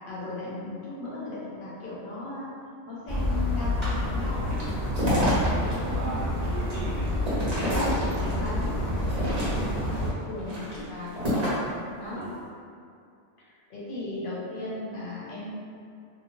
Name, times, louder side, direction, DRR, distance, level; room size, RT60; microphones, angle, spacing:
voice 1, 0.1-2.5 2.9-4.5 5.0-6.3 7.3-11.2 11.9-12.2 13.5-15.5, left 2 dB, 50° left, -8 dB, 0.9 m, -36 dB
sound 1, 3.1-10.1, left 1 dB, 15° right, 1.2 m, -28 dB
sound 2, 4.5-5.7 6.2-8.5 9.0-9.9 10.4-11.7, equal, 40° right, 0.7 m, -29 dB
voice 2, 5.2-7.6 12.2-12.4, right 3 dB, 75° right, -6 dB, 0.9 m, -40 dB
2.6 x 2.0 x 2.9 m, 2.4 s
omnidirectional pair, 1.2 m